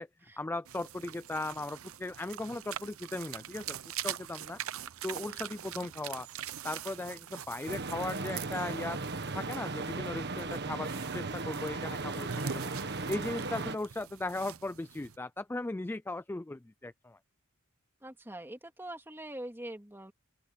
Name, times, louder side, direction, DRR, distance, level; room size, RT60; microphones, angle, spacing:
voice 1, 0.4-3.8 4.0-4.6 5.0-6.3 6.6-9.0 9.3-12.7 13.1-17.2, left 2 dB, 10° left, 0.3 m, -37 dB
sound 1, 0.6-15.2, right 9 dB, 65° right, 0.7 m, -43 dB
sound 2, 7.7-13.8, right 3 dB, 50° right, 1.6 m, -37 dB
voice 2, 18.0-20.1, right 1 dB, 10° right, 2.7 m, -43 dB
open air
head